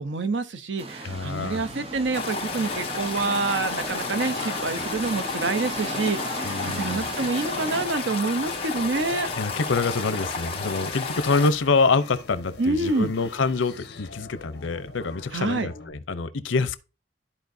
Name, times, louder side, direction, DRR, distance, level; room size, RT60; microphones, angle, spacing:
voice 1, 0.0-9.3 12.6-13.1 15.3-15.7, right 3 dB, 75° right, 0.7 m, -27 dB
sound 1, 0.8-7.9, right 2 dB, 30° right, 0.7 m, -37 dB
voice 2, 1.0-1.6 6.4-7.1 9.4-16.8, left 4 dB, 90° left, 0.6 m, -26 dB
sound 2, 1.1-15.9, left 2 dB, 55° left, 1.3 m, -44 dB
sound 3, 2.1-11.5, left 4 dB, 30° left, 1.1 m, -31 dB
13.0 x 4.4 x 2.7 m
head